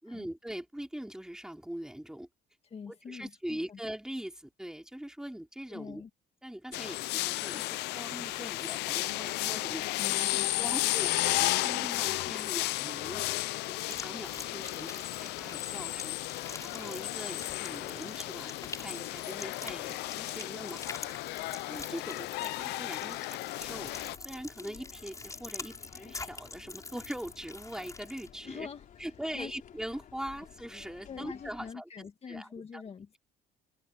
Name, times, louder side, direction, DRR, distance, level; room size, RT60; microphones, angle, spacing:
voice 1, 0.0-2.3 2.9-6.0 6.4-13.2 13.7-20.8 21.7-24.0 24.2-28.7 29.0-32.8, right 1 dB, 5° right, 4.9 m, -42 dB
voice 2, 2.7-3.8 5.7-6.1 10.0-10.7 28.4-28.9 29.3-29.5 31.1-33.2, left 6 dB, 35° left, 2.0 m, -44 dB
sound 1, 6.7-24.2, left 19 dB, 85° left, 0.6 m, -33 dB
sound 2, 13.8-28.3, left 3 dB, 20° left, 6.8 m, -46 dB
sound 3, 23.6-31.7, left 9 dB, 50° left, 4.0 m, -54 dB
cardioid pair, 110°, 17 cm